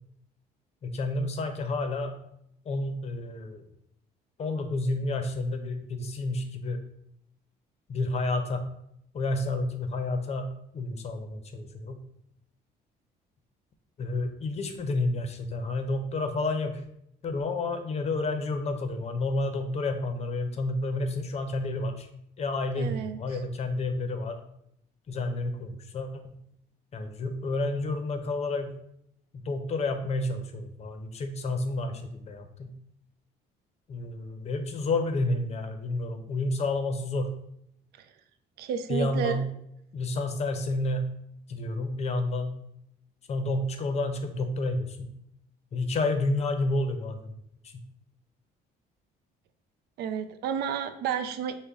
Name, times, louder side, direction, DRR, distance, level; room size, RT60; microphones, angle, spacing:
voice 1, 0.8-2.2 2.7-3.7 4.4-6.8 7.9-8.6 9.1-12.0 14.0-16.8 17.2-22.1 22.4-24.4 25.1-26.4 26.9-28.7 29.3-32.7 33.9-37.3 38.9-39.4 39.9-41.1 41.5-42.5 43.3-45.1 45.7-47.3 47.6-47.8, left 2 dB, 40° left, 7 dB, 0.6 m, -30 dB
voice 2, 22.8-23.2 38.0-38.1 38.6-39.4 50.0-51.6, right 8 dB, 70° right, 9 dB, 0.4 m, -31 dB
5.2 x 2.1 x 3.5 m, 0.75 s
cardioid pair, 110°, 17 cm